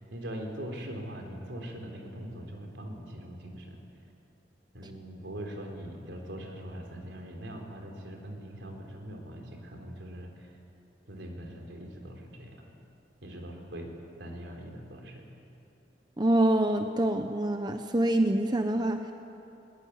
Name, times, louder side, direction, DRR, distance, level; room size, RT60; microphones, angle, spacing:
voice 1, 0.0-3.8 4.7-10.5 11.1-12.6 13.2-13.9 14.2-15.3, equal, 80° right, 2 dB, 4.0 m, -41 dB
voice 2, 16.2-19.0, right 1 dB, 25° right, 6 dB, 0.9 m, -25 dB
20.5 x 20.0 x 9.7 m, 2.8 s
head